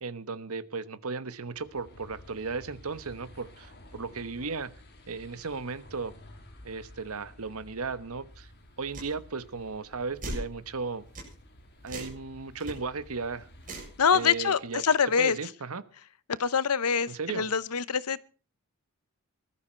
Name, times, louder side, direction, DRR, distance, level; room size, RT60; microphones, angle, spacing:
voice 1, 0.0-4.7 5.1-6.1 6.6-8.5 8.8-11.1 11.8-13.5 14.1-14.8 15.2-15.8 17.1-17.5, right 4 dB, 70° right, 14 dB, 1.2 m, -35 dB
sound 1, 1.3-14.8, left 1 dB, 50° left, 3.6 m, -53 dB
sound 2, 8.9-9.1 10.2-10.5 11.2-11.3 11.9-12.2 12.6-12.7 13.6-13.9, right 1 dB, 35° right, 7.8 m, -38 dB
voice 2, 14.0-15.4 16.3-18.2, left 6 dB, 85° left, 18 dB, 0.8 m, -25 dB
19.5 x 13.0 x 4.5 m, 0.37 s
head